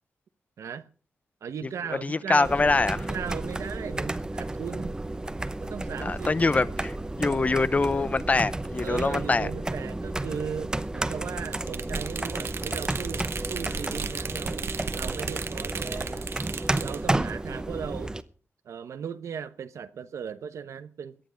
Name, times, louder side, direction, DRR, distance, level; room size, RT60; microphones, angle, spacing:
voice 1, 0.6-0.9 1.4-2.5 2.9-5.1 5.6-6.3 8.8-14.7 14.9-16.3 16.8-18.1 18.6-21.2, right 7 dB, 90° right, 1.0 m, -37 dB
voice 2, 2.0-3.1 6.0-9.5, left 3 dB, 30° left, 0.7 m, -24 dB
sound 1, 2.4-18.2, right 2 dB, 15° right, 0.8 m, -32 dB
sound 2, 11.4-17.0, right 6 dB, 55° right, 1.0 m, -36 dB
18.0 x 12.0 x 5.1 m
wide cardioid pair, 120°, 5 cm